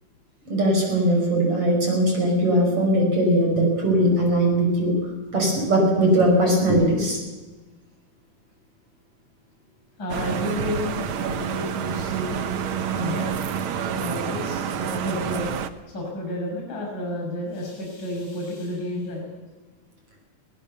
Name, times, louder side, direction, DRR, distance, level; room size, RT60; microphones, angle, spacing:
voice 1, 0.5-4.9 5.3-7.2, right 1 dB, 45° right, 0 dB, 6.3 m, -20 dB
voice 2, 10.0-12.4 12.9-13.4 13.9-15.5 15.9-19.2, left 1 dB, 35° left, -1 dB, 7.4 m, -31 dB
sound 1, 10.1-15.7, right 7 dB, 70° right, 1.2 m, -28 dB
22.5 x 18.5 x 6.9 m, 1.2 s
omnidirectional pair, 3.6 m